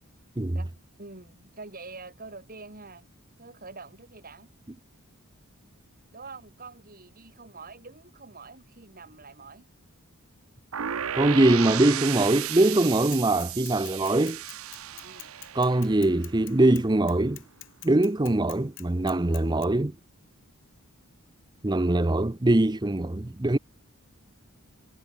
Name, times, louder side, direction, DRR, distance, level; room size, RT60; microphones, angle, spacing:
voice 1, 1.0-3.1 3.4-4.5 6.1-9.7 14.9-15.3, right 3 dB, 40° right, 2.7 m, -45 dB
sound 1, 10.7-16.6, right 10 dB, 70° right, 0.7 m, -34 dB
voice 2, 11.1-14.4 15.5-17.4 17.8-19.9 21.6-23.6, right 2 dB, 20° right, 0.6 m, -22 dB
Bicycle / Mechanisms, 13.1-19.7, left 17 dB, 55° left, 7.7 m, -45 dB
head